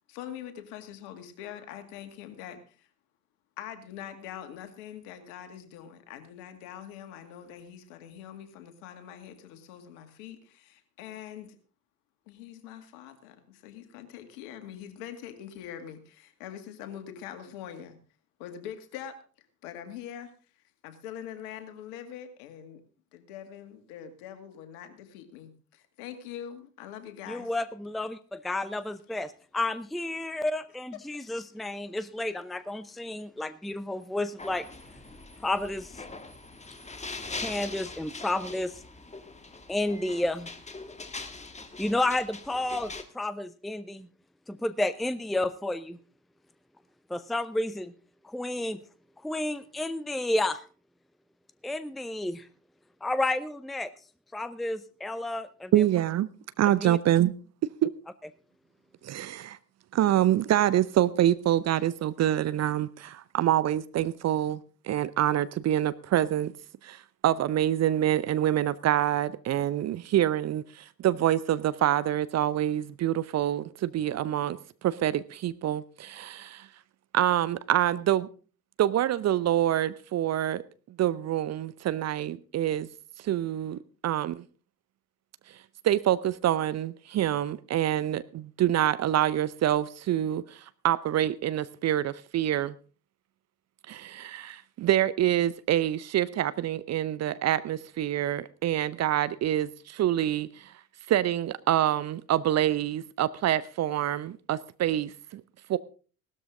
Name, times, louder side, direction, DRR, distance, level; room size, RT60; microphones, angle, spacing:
voice 1, 0.1-2.9 3.6-11.6 12.3-18.0 18.4-19.1 19.6-20.3 20.8-22.8 23.1-27.5, left 10 dB, 65° left, 8 dB, 2.3 m, -43 dB
voice 2, 27.3-34.7 35.4-36.0 37.3-38.8 39.7-40.5 41.8-44.1 44.5-46.0 47.1-47.9 48.2-48.8 49.2-50.6 51.6-52.5 53.0-53.9 54.3-55.8 56.8-57.0, left 2 dB, ahead, 14 dB, 0.7 m, -31 dB
sound 1, 34.4-43.0, left 3 dB, 15° left, 1.7 m, -42 dB
voice 3, 55.7-56.3 56.6-57.3 57.8-57.9 59.0-59.6 59.9-66.5 66.8-76.7 77.1-78.3 78.8-80.6 81.0-82.9 83.2-84.4 85.5-85.6 85.8-92.8 93.9-100.7 101.1-105.4 105.7-105.8, right 12 dB, 35° right, 17 dB, 0.7 m, -26 dB
17.0 x 13.0 x 3.8 m, 0.39 s
figure-of-eight pair, 55°, 43 cm